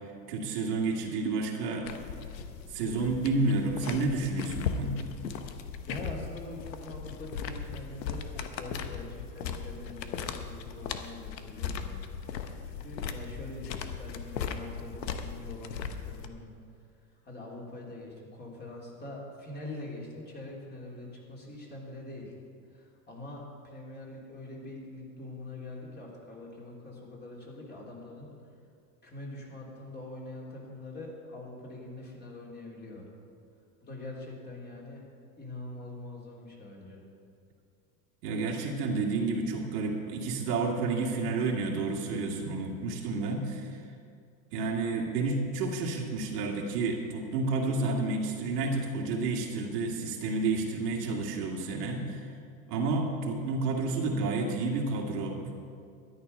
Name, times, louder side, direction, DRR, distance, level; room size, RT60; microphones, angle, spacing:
voice 1, 0.3-1.9 2.7-5.1 38.2-43.8 44.5-52.3 52.7-55.6, right 3 dB, 70° right, 0 dB, 2.3 m, -30 dB
sound 1, 1.8-16.3, left 6 dB, 85° left, 1.1 m, -38 dB
voice 2, 5.8-12.0 12.3-16.5 17.2-22.3 22.7-28.3 29.0-33.1 33.8-35.1 35.4-37.0, left 2 dB, 20° left, -3 dB, 3.2 m, -44 dB
12.5 x 9.9 x 5.5 m, 2.3 s
hypercardioid pair, 115°, 49 cm